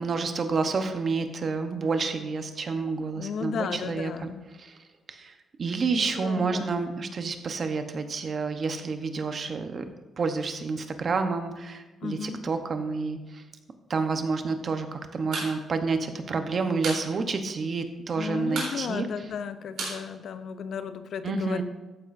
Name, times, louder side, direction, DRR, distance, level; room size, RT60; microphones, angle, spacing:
voice 1, 0.0-4.3 4.6-4.8 5.1-9.8 10.2-13.4 13.9-19.1 21.2-21.6, right 4 dB, 40° right, 7 dB, 1.0 m, -29 dB
voice 2, 3.0-4.4 6.0-6.8 12.0-12.5 18.2-21.6, left 6 dB, 60° left, 11 dB, 0.6 m, -34 dB
sound 1, 15.3-15.5 15.8-15.9 16.2-17.1 17.4-17.5 17.8-18.2 18.5-20.9, right 3 dB, 75° right, 3.6 m, -34 dB
13.5 x 9.4 x 2.6 m, 1.2 s
cardioid pair, 140°, 0 cm